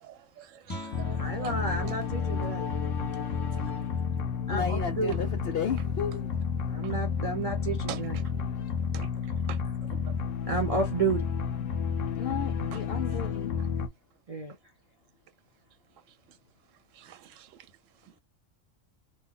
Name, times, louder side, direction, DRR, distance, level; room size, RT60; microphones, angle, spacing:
voice 1, 0.0-1.5 6.8-6.9 7.9-8.0 8.9-9.1 9.5-9.6 10.1-10.2 17.0-17.5, right 10 dB, 85° right, 1.0 m, -43 dB
Guitar, 0.6-6.2, left 1 dB, 20° left, 0.8 m, -49 dB
sound 1, 0.9-13.9, left 6 dB, 80° left, 1.2 m, -31 dB
voice 2, 1.2-2.6 4.5-5.1 6.7-8.2 10.5-11.3 14.3-14.5, right 4 dB, 35° right, 0.6 m, -31 dB
voice 3, 4.5-6.3 12.1-13.5, left 7 dB, 60° left, 0.7 m, -33 dB
3.1 x 2.2 x 3.7 m
omnidirectional pair, 1.3 m